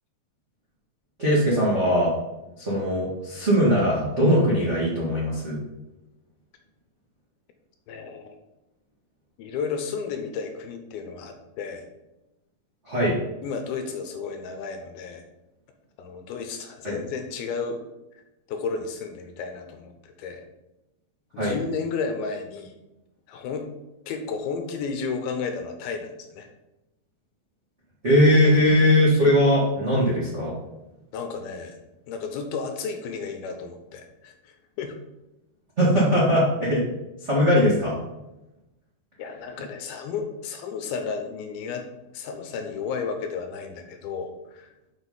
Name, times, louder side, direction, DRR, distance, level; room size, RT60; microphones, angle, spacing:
voice 1, 1.2-2.1 2.6-5.6 12.9-13.1 16.8-17.0 21.4-21.6 28.0-30.5 35.8-36.8 37.2-38.0, equal, 65° right, -6 dB, 0.6 m, -20 dB
voice 2, 7.9-8.4 9.4-11.8 13.4-15.2 16.0-17.8 18.1-18.2 18.5-20.4 21.3-22.8 23.3-23.7 24.1-26.5 31.1-31.8 32.1-35.0 39.2-41.9 42.1-44.7, left 5 dB, 75° left, 5 dB, 2.6 m, -33 dB
6.3 x 5.9 x 5.5 m, 0.96 s
omnidirectional pair, 4.7 m